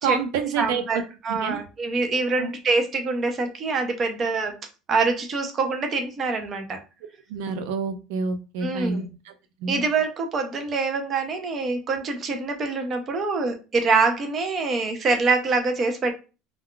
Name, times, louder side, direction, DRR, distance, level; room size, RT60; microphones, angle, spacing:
voice 1, 0.0-1.0 1.3-1.6 2.4-2.5 7.3-9.3 9.6-9.8, right 5 dB, 75° right, 8 dB, 0.5 m, -28 dB
voice 2, 0.6-1.0 1.2-4.5 4.9-6.8 8.6-9.0 9.7-16.1, right 4 dB, 25° right, 4 dB, 0.5 m, -25 dB
2.3 x 2.2 x 3.6 m, 0.31 s
cardioid pair, 165°, 0 cm